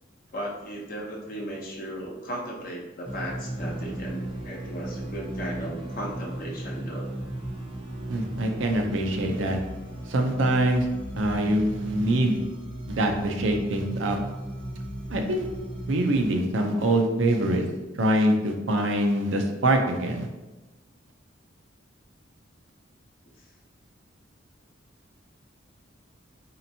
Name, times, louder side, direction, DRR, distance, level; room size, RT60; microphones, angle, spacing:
voice 1, 0.3-7.1, equal, 50° left, -2 dB, 0.8 m, -36 dB
sound 1, 3.0-16.2, right 1 dB, 30° right, 0.7 m, -36 dB
voice 2, 8.1-9.6 10.1-10.9 11.2-12.4 12.9-14.2 15.1-15.5 15.9-17.7 18.0-20.3, right 1 dB, 75° right, 3 dB, 0.5 m, -24 dB
4.2 x 2.8 x 2.7 m, 1.1 s
head